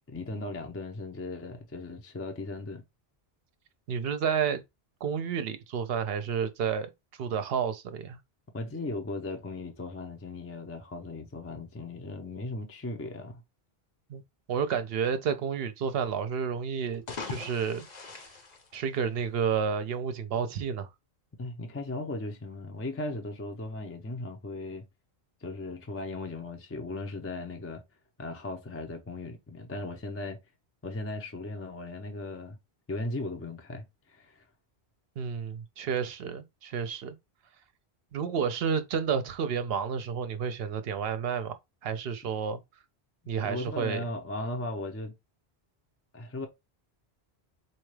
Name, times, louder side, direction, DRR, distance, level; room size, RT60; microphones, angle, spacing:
voice 1, 0.1-2.8 8.5-13.4 21.4-24.8 25.4-27.8 28.2-30.4 30.8-32.6 32.9-34.4 43.4-45.1 46.1-46.5, left 2 dB, 20° left, 0.5 m, -37 dB
voice 2, 3.9-4.6 5.0-6.9 7.2-8.2 14.1-14.2 14.5-17.9 18.7-20.9 35.2-37.1 38.1-41.6 41.8-42.6 43.3-44.0, right 7 dB, 70° right, 0.8 m, -30 dB
sound 1, 16.9-19.5, left 4 dB, 45° left, 0.8 m, -41 dB
4.3 x 2.3 x 3.1 m
omnidirectional pair, 1.1 m